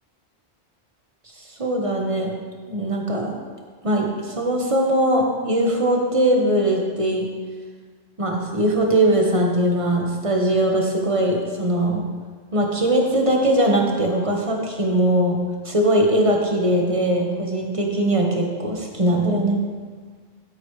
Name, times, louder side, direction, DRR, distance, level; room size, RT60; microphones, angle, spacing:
voice 1, 1.6-2.4 2.7-3.3 3.8-7.3 8.2-12.1 12.5-15.4 15.6-19.6, right 1 dB, 30° right, 0 dB, 1.3 m, -20 dB
13.0 x 8.6 x 3.2 m, 1.5 s
omnidirectional pair, 1.1 m